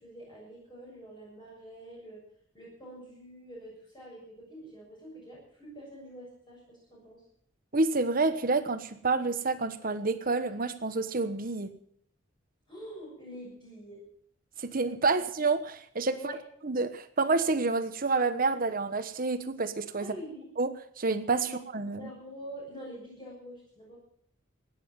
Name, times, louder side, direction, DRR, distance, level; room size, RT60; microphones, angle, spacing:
voice 1, 0.0-2.2 2.5-7.2 12.7-14.0 15.1-15.2 16.1-16.4 20.0-20.5 21.4-21.6 22.0-24.0, equal, 25° left, -5 dB, 6.8 m, -46 dB
voice 2, 7.7-11.7 14.6-16.3 16.6-20.1 20.6-22.1, right 3 dB, 45° right, 11 dB, 1.2 m, -28 dB
16.0 x 10.0 x 7.5 m, 0.64 s
head